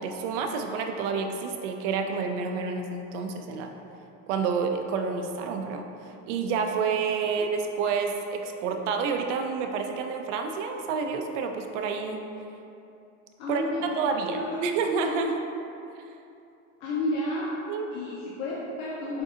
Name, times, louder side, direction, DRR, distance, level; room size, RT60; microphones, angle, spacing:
voice 1, 0.0-3.7 4.3-5.8 6.3-12.2 13.5-13.6 13.9-15.4 17.7-17.9, right 5 dB, 80° right, 4 dB, 0.5 m, -29 dB
voice 2, 13.4-14.1 14.5-14.6 16.8-17.5 17.9-19.2, left 1 dB, 60° left, -6 dB, 0.6 m, -31 dB
5.2 x 2.6 x 2.4 m, 2.7 s
supercardioid pair, 160°, 35 cm